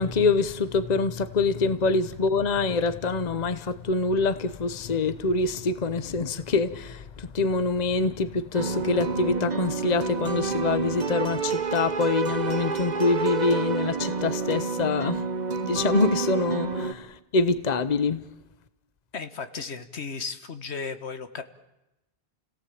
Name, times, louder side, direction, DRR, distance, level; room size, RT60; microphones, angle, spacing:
voice 1, 0.0-15.2 15.6-18.2, left 3 dB, 40° left, 1.1 m, -25 dB
sound 1, 8.5-16.9, right 5 dB, 40° right, 1.3 m, -29 dB
voice 2, 19.1-21.4, left 5 dB, 80° left, 1.7 m, -35 dB
29.5 x 17.5 x 8.6 m
omnidirectional pair, 1.1 m